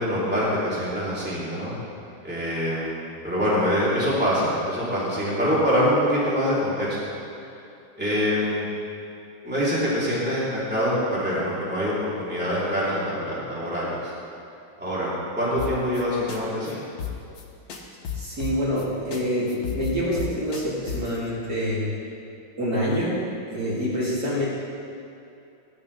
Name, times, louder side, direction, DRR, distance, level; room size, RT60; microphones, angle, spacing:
voice 1, 0.0-1.7 2.2-3.0 3.2-7.1 8.0-8.7 9.4-14.1 14.8-15.1 15.4-16.8, equal, 5° right, -9 dB, 3.5 m, -24 dB
sound 1, 15.6-16.0 16.3-16.4 16.7-16.8 17.0-17.4 17.7-18.9 19.1-19.2 19.5-21.2, left 8 dB, 80° left, 2.0 m, -32 dB
voice 2, 18.2-21.8 22.6-23.2 23.5-24.5, equal, 50° right, -7 dB, 3.6 m, -26 dB
18.5 x 10.5 x 3.5 m, 2.7 s
omnidirectional pair, 2.2 m